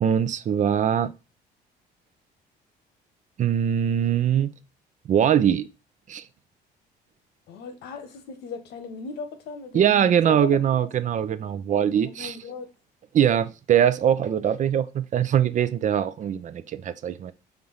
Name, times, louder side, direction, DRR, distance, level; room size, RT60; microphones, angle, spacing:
voice 1, 0.0-1.1 3.4-4.5 5.1-5.7 6.1-6.2 9.7-12.4 13.1-17.3, right 9 dB, 45° right, 0.6 m, -22 dB
voice 2, 7.5-10.9 12.0-12.7, left 5 dB, 75° left, 1.3 m, -38 dB
4.6 x 3.7 x 5.5 m
cardioid pair, 110°, 17 cm